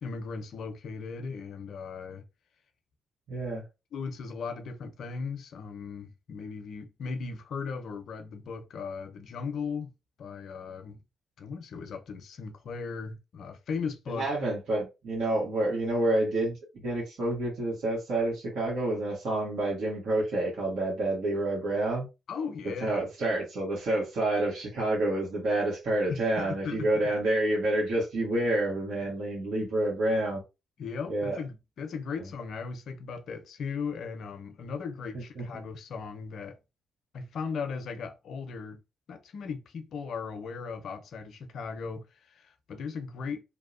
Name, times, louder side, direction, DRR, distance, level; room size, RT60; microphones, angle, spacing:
voice 1, 0.0-2.2 3.9-9.9 10.2-11.0 11.4-14.3 22.3-23.1 26.1-26.9 30.8-36.6 37.1-38.8 39.1-43.4, left 5 dB, 70° left, 0.5 m, -37 dB
voice 2, 3.3-3.6 14.1-22.1 22.8-30.4 31.1-31.4 35.4-35.5, right 1 dB, 70° right, 1.2 m, -28 dB
2.7 x 2.1 x 2.5 m
supercardioid pair, 55°, 0 cm